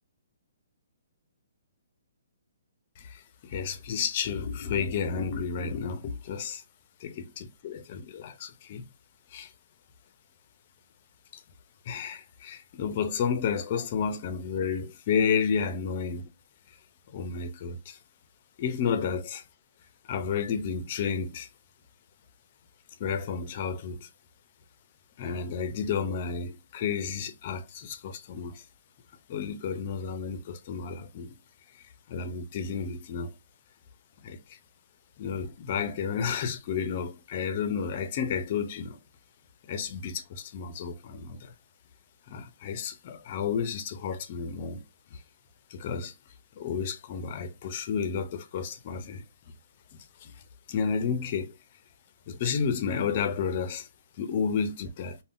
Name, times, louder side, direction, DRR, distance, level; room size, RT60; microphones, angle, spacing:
voice 1, 3.0-6.6 7.0-8.9 9.3-9.5 11.3-11.4 11.9-16.3 17.1-18.0 18.6-19.4 20.1-21.5 23.0-24.1 25.2-28.6 29.3-31.4 32.1-33.3 34.2-34.4 35.2-39.0 39.7-41.5 42.3-44.8 45.1-45.2 45.7-46.1 46.6-49.2 49.9-50.3 50.7-51.6 52.3-53.9 54.2-55.2, left 6 dB, 35° left, 0.4 m, -31 dB
3.5 x 2.1 x 2.4 m
hypercardioid pair, 165°, 0 cm